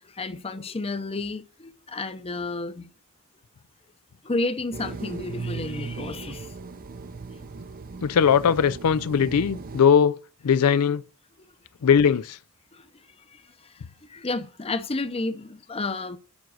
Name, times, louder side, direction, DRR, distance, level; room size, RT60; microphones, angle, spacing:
voice 1, 0.2-2.9 4.2-6.5 14.1-16.2, left 2 dB, 25° left, 0.7 m, -31 dB
sound 1, 4.7-9.8, right 4 dB, 40° right, 0.6 m, -37 dB
voice 2, 8.0-10.2 10.4-11.0 11.8-12.4, left 7 dB, 90° left, 0.4 m, -20 dB
7.3 x 5.9 x 6.2 m
head